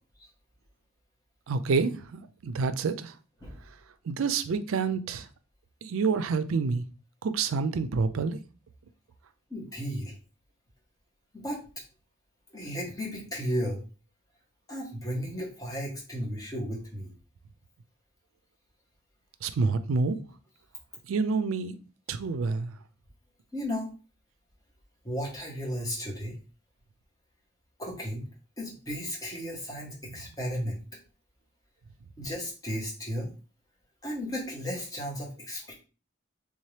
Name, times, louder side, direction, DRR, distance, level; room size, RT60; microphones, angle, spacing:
voice 1, 1.5-3.1 4.1-5.3 5.8-6.8 7.2-8.4 19.4-20.2 21.1-21.8 22.1-22.7, right 4 dB, 75° right, 0.4 m, -28 dB
voice 2, 9.5-10.2 11.3-11.6 12.5-13.8 14.7-17.1 23.5-23.9 25.0-26.4 27.8-28.2 28.6-30.8 32.2-33.3 34.0-35.7, equal, 15° left, 1.1 m, -34 dB
3.5 x 2.8 x 3.2 m
head